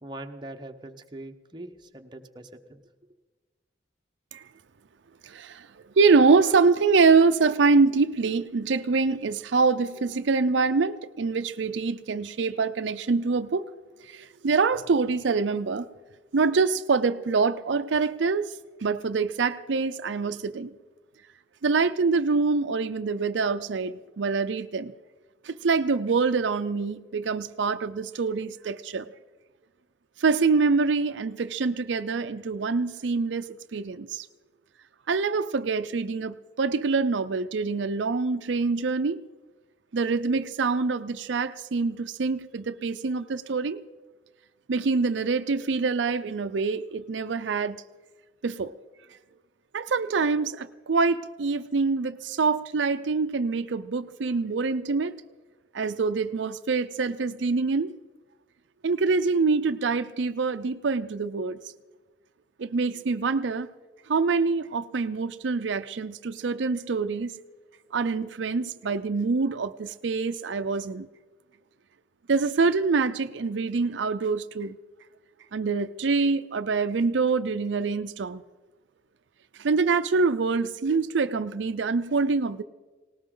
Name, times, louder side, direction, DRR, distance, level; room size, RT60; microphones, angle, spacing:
voice 1, 0.0-2.8, right 1 dB, 25° right, 4 dB, 0.9 m, -42 dB
voice 2, 5.2-5.7 6.0-13.7 14.1-15.9 16.3-18.5 18.8-20.7 21.6-24.9 25.4-29.1 30.2-34.3 35.1-39.2 39.9-43.8 44.7-47.8 48.4-48.7 49.7-55.1 55.7-57.9 58.8-61.6 62.6-63.7 64.1-67.3 67.9-71.1 72.3-74.8 75.5-78.4 79.6-82.6, right 4 dB, 75° right, 10 dB, 0.5 m, -25 dB
19.0 x 18.5 x 3.8 m, 1.3 s
head